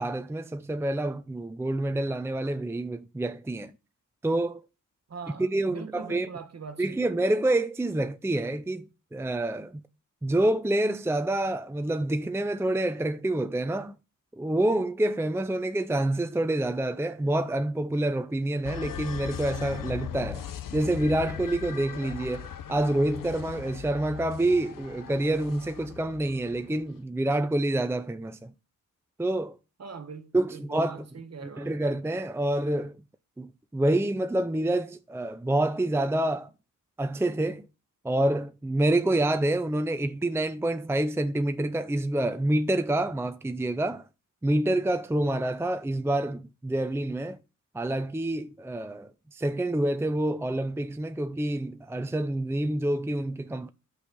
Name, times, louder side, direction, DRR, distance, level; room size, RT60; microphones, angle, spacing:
voice 1, 0.0-3.7 4.2-4.6 5.4-6.3 6.8-9.8 10.2-14.0 14.4-20.5 20.7-28.5 29.2-29.5 30.3-31.0 31.6-32.9 33.4-36.5 37.0-37.7 38.0-44.1 44.4-47.4 47.7-53.7, right 1 dB, 10° right, 0.6 m, -27 dB
voice 2, 5.1-7.1 29.8-31.7, right 5 dB, 50° right, 1.6 m, -42 dB
sound 1, 18.6-26.9, left 9 dB, 80° left, 1.0 m, -39 dB
10.0 x 6.5 x 5.5 m
cardioid pair, 90°, 33 cm